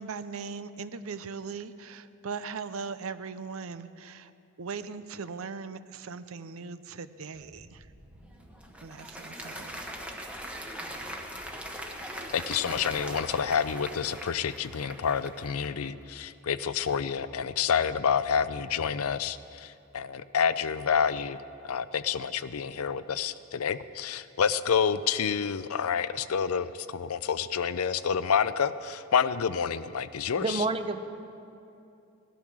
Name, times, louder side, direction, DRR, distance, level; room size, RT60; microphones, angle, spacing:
voice 1, 0.0-4.3 4.6-7.9 8.8-9.8, right 5 dB, 75° right, 13 dB, 0.6 m, -39 dB
Wind, 7.3-14.2 14.5-15.0, equal, 90° right, 2.2 m, -55 dB
Applause, 8.2-15.9, equal, 5° right, 1.1 m, -41 dB
voice 2, 12.3-21.4 21.6-30.6, left 7 dB, 90° left, 14 dB, 0.5 m, -28 dB
voice 3, 30.4-31.0, right 3 dB, 25° right, 9 dB, 0.7 m, -28 dB
17.5 x 12.5 x 6.2 m, 2.7 s
head